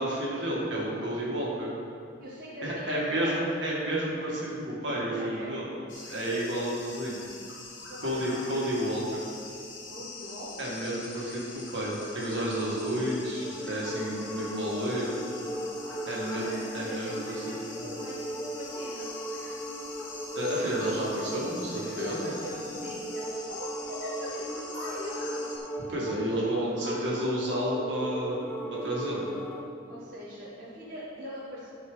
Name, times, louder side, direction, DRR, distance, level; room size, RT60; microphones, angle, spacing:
voice 1, 0.0-1.7 2.6-5.7 5.9-7.3 8.0-9.2 10.6-15.2 16.1-16.5 16.7-17.2 17.5-17.6 17.8-17.9 20.3-22.3 25.9-29.3, equal, 70° right, -5 dB, 2.0 m, -31 dB
voice 2, 2.2-3.5 5.2-5.6 6.2-6.6 7.9-8.7 9.9-10.8 15.8-19.1 20.5-21.0 22.0-23.2 23.5-25.2 26.7-27.3 29.9-31.7, equal, 50° right, -8 dB, 1.3 m, -42 dB
sound 1, 5.9-25.6, left 3 dB, 85° left, 1.4 m, -44 dB
sound 2, 12.1-29.7, right 1 dB, 10° left, 0.4 m, -38 dB
11.5 x 4.8 x 4.0 m, 2.6 s
head